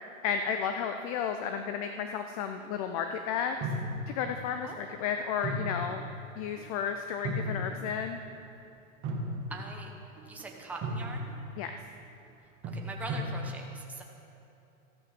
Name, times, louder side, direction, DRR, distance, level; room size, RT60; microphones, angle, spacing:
voice 1, 0.2-3.7 4.1-6.0 6.4-8.2 11.6-11.7, left 7 dB, 25° left, 7 dB, 0.4 m, -33 dB
sound 1, 3.6-4.4 5.4-6.2 6.6-6.7 7.2-7.9 9.0-9.8 10.2-10.4 10.8-11.5 12.6-13.4, equal, 25° right, 1.8 m, -35 dB
voice 2, 4.6-5.0 9.5-9.9 10.2-11.3 12.7-14.0, right 3 dB, 5° right, 0 dB, 1.0 m, -42 dB
14.0 x 12.5 x 5.9 m, 2.8 s
hypercardioid pair, 140°, 43 cm